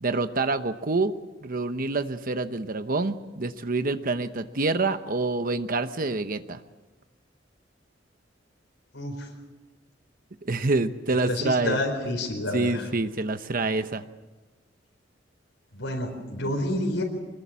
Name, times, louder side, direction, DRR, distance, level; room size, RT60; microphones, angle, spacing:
voice 1, 0.0-1.1 1.4-6.6 10.4-11.8 12.5-14.0, right 3 dB, 50° right, 10 dB, 0.9 m, -27 dB
voice 2, 8.9-9.3 11.3-12.9 15.7-17.0, left 1 dB, 90° left, 0 dB, 4.5 m, -29 dB
25.5 x 21.0 x 7.5 m, 1.2 s
head